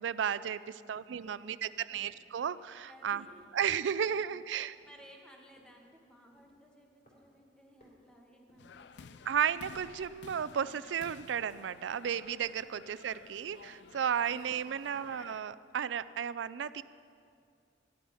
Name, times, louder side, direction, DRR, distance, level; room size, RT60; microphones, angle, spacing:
voice 1, 0.0-3.2 3.5-4.8 9.3-16.8, right 8 dB, 90° right, 16 dB, 0.4 m, -34 dB
voice 2, 0.7-2.0 2.8-3.5 4.1-4.4 4.8-9.2 14.2-15.0, equal, 5° left, 0 dB, 1.5 m, -58 dB
sound 1, 1.2-1.4 1.9-2.2 2.6-3.0 3.3-3.7 4.1-4.5 4.8-5.1 5.6-5.9 6.3-6.7 7.1-7.5 7.8-8.8 9.2-9.6 9.9-10.2 10.7-11.0 11.4-11.7 12.1-12.4 12.9-13.3 13.6-13.9 14.3-14.7 15.1-15.4 15.9-16.0, left 1 dB, 45° left, 3.4 m, -65 dB
sound 2, 8.6-15.4, left 5 dB, 70° left, 0.4 m, -53 dB
13.0 x 10.0 x 5.5 m, 2.3 s
head